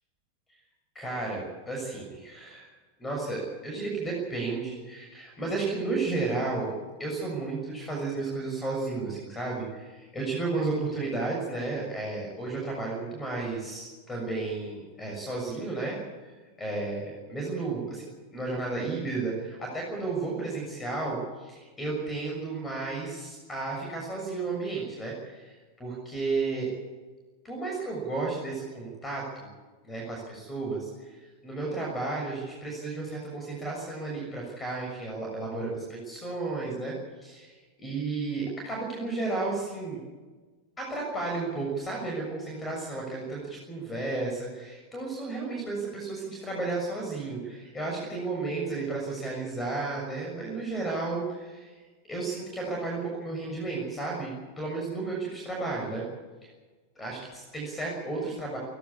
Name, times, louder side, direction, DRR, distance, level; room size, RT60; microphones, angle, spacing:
voice 1, 0.9-18.1 18.3-26.7 27.4-29.5 29.8-36.9 37.2-40.0 40.8-51.8 52.1-56.0 56.9-58.6, right 3 dB, 15° left, -1 dB, 6.6 m, -33 dB
29.0 x 12.0 x 8.6 m, 1.3 s
figure-of-eight pair, 90°, 0 cm